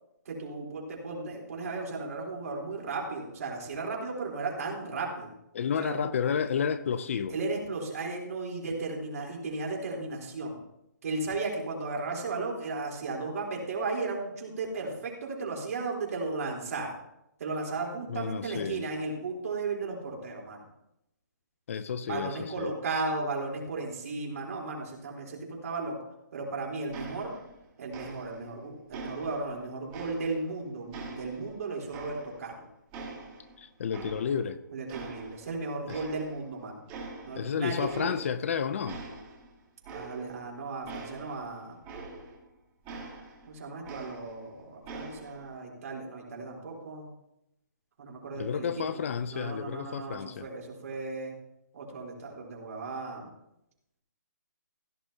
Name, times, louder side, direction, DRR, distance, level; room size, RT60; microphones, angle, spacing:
voice 1, 0.3-5.3 5.8-6.1 7.3-10.6 11.0-17.0 17.4-20.7 22.0-26.0 26.3-27.3 27.8-32.7 34.7-36.8 37.2-38.2 39.9-41.9 43.5-47.1 48.0-49.0 49.3-51.4 51.7-53.3, right 3 dB, 50° right, 4.0 m, -35 dB
voice 2, 5.5-7.4 18.1-18.9 21.7-22.7 33.6-34.6 35.9-36.0 37.4-39.0 48.4-50.5, left 7 dB, 45° left, 0.6 m, -31 dB
sound 1, 26.9-27.6 27.9-28.5 28.9-30.5 30.9-32.6 32.9-34.5 34.9-35.6 35.9-36.5 36.9-37.5 37.8-38.5 38.8-42.5 42.9-44.5 44.8-45.5, right 3 dB, 20° right, 2.3 m, -44 dB
16.5 x 10.5 x 2.9 m
hypercardioid pair, 160°, 10 cm